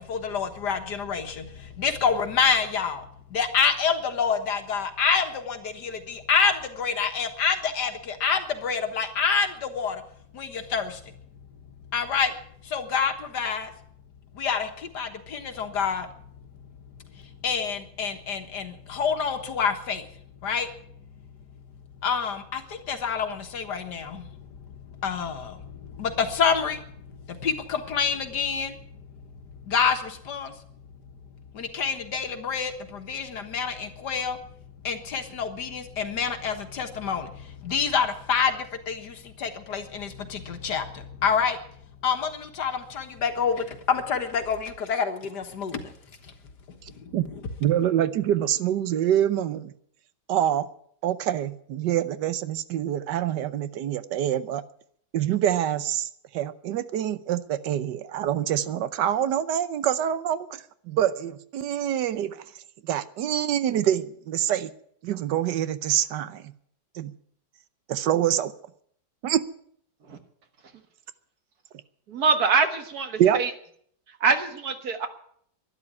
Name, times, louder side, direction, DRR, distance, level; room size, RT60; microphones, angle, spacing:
voice 1, 0.0-3.0 3.3-10.0 10.3-11.0 11.9-12.3 12.6-13.7 14.3-16.1 17.4-20.1 20.4-20.7 22.0-24.3 25.0-26.8 27.3-28.8 29.7-30.5 31.5-34.4 34.8-41.6 42.0-45.9 47.0-47.1, left 6 dB, 75° left, 2.0 m, -27 dB
voice 2, 47.6-49.7 50.3-50.7 51.0-54.6 55.1-56.1 56.3-62.4 62.8-64.7 65.0-66.5 66.9-67.1 67.9-68.5 69.2-69.4 73.2-73.4, right 11 dB, 80° right, 1.4 m, -25 dB
voice 3, 72.1-73.5 74.2-75.1, right 4 dB, 60° right, 2.0 m, -24 dB
12.0 x 11.0 x 9.5 m
omnidirectional pair, 1.8 m